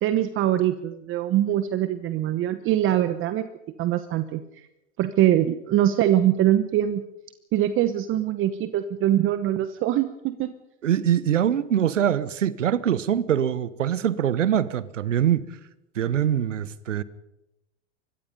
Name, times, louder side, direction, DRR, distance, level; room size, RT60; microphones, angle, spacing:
voice 1, 0.0-3.5 3.8-4.7 5.0-7.0 7.5-10.5, right 12 dB, 35° right, 1.0 m, -23 dB
voice 2, 10.8-15.5 15.9-17.0, right 10 dB, 90° right, 1.2 m, -23 dB
24.5 x 20.5 x 5.4 m
hypercardioid pair, 110°, 37 cm